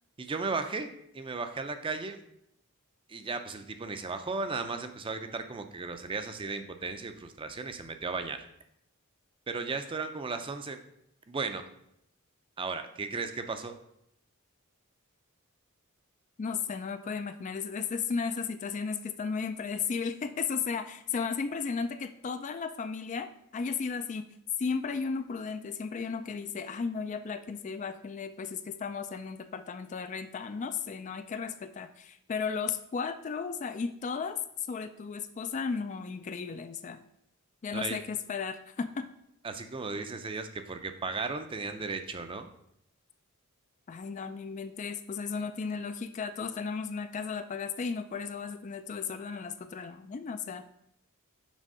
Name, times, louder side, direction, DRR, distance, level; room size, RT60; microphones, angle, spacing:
voice 1, 0.2-2.2 3.1-8.4 9.5-10.8 11.3-11.6 12.6-13.8 37.7-38.0 39.4-42.5, right 4 dB, 25° right, 8 dB, 0.5 m, -35 dB
voice 2, 16.4-24.3 24.6-34.4 34.7-37.0 37.6-39.1 43.9-50.7, left 5 dB, 35° left, 10 dB, 0.3 m, -35 dB
6.2 x 4.4 x 5.4 m, 0.76 s
head